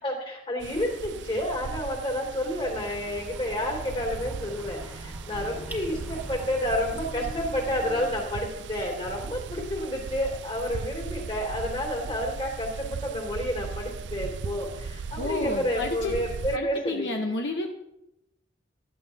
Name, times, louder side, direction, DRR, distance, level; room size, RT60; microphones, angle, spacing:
voice 1, 0.0-17.1, left 1 dB, 30° left, 0 dB, 3.0 m, -30 dB
sound 1, 0.6-16.6, right 5 dB, 70° right, 0.4 m, -38 dB
sound 2, 2.8-8.1, equal, 10° right, 1.7 m, -43 dB
voice 2, 15.2-16.1 16.5-17.7, left 2 dB, 65° left, 2 dB, 1.0 m, -30 dB
15.5 x 13.0 x 2.9 m, 0.87 s
head